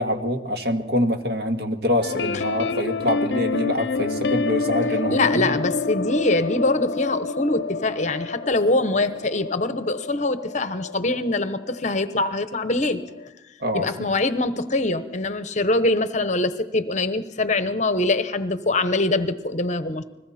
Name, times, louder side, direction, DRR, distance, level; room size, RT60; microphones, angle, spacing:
voice 1, 0.0-5.6 13.6-14.1, left 1 dB, 65° right, 5 dB, 1.9 m, -25 dB
sound 1, 2.0-11.9 12.2-12.4 12.7-12.8 13.2-13.3, left 3 dB, 70° left, 0.6 m, -28 dB
voice 2, 5.1-13.0 13.7-20.0, left 2 dB, 40° left, 11 dB, 1.0 m, -23 dB
29.5 x 21.0 x 4.3 m, 1.0 s
head